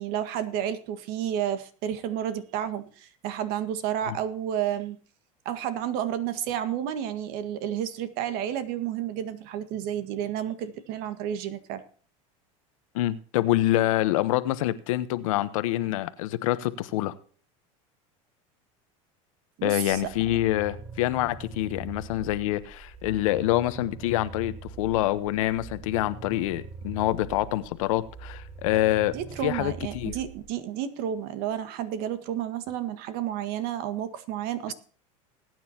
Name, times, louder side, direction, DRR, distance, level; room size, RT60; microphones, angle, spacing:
voice 1, 0.0-5.0 5.4-11.8 19.6-20.0 29.1-34.7, right 10 dB, 65° right, 11 dB, 1.8 m, -31 dB
voice 2, 12.9-17.1 19.6-29.1 29.4-30.2, left 15 dB, 80° left, 13 dB, 1.1 m, -26 dB
sound 1, 19.9-30.5, right 5 dB, 15° right, 4.9 m, -43 dB
20.0 x 9.4 x 2.9 m, 0.43 s
supercardioid pair, 110°, 17 cm